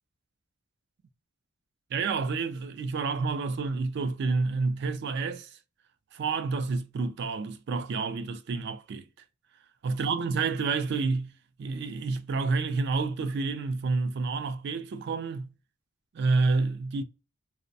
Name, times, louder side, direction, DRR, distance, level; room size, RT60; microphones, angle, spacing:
voice 1, 1.9-5.6 6.1-9.0 9.8-11.3 11.6-15.5 16.1-17.0, right 4 dB, 55° right, 0.3 m, -29 dB
2.5 x 2.0 x 2.6 m
head